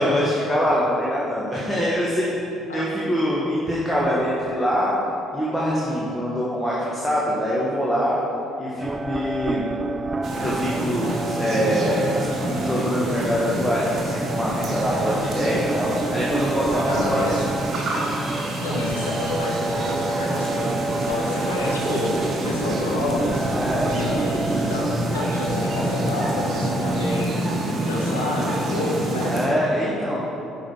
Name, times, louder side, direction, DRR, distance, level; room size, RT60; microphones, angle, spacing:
voice 1, 0.0-2.4 2.7-4.9 5.3-8.2 8.6-9.7 10.4-12.1 12.4-17.2 23.4-24.2 29.3-30.3, equal, 10° left, -7 dB, 1.6 m, -24 dB
sound 1, 8.8-27.2, right 2 dB, 25° right, 0.4 m, -30 dB
sound 2, 10.2-29.5, right 1 dB, 45° right, 1.5 m, -27 dB
voice 2, 16.9-17.4 18.6-20.8 21.1-22.2 22.4-23.5 23.9-27.4 27.8-29.3, left 2 dB, 85° left, -4 dB, 1.3 m, -29 dB
11.0 x 4.8 x 4.8 m, 2.9 s
figure-of-eight pair, 50°, 0 cm